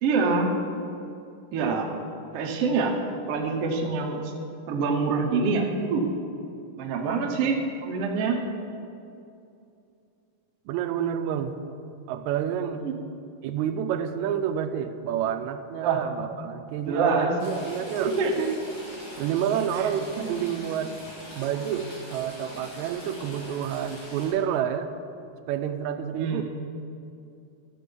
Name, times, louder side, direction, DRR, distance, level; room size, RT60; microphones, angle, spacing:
voice 1, 0.0-0.5 1.5-1.9 2.3-3.0 3.3-4.3 4.7-6.1 6.8-8.4 12.8-12.9 15.8-16.0 16.8-17.3 18.0-18.5 19.8-19.9 20.2-20.3 26.1-26.4, right 4 dB, 70° right, 1 dB, 1.4 m, -25 dB
voice 2, 10.7-11.5 12.1-12.9 13.4-18.1 19.2-20.9 21.3-24.9 25.5-26.4, right 9 dB, 85° right, 8 dB, 1.6 m, -29 dB
Stream / Trickle dribble, 17.4-24.3, equal, 75° left, 4.7 m, -43 dB
13.0 x 6.8 x 5.3 m, 2.6 s
omnidirectional pair, 3.8 m